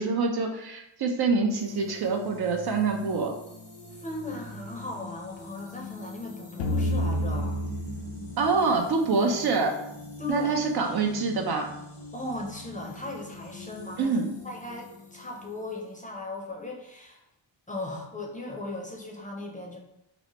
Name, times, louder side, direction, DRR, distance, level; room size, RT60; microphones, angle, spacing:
voice 1, 0.0-3.3 8.4-9.8 10.3-11.7 14.0-14.3, right 4 dB, 55° right, 3 dB, 0.5 m, -25 dB
sound 1, 1.5-16.2, left 2 dB, 90° left, 1.2 m, -45 dB
voice 2, 3.9-7.6 10.2-10.5 12.1-14.2 14.4-17.2 17.7-19.8, left 2 dB, 15° left, -1 dB, 0.6 m, -37 dB
sound 2, 6.6-9.5, equal, 75° left, 0.6 m, -30 dB
3.0 x 2.1 x 2.8 m, 0.84 s
cardioid pair, 60°, 49 cm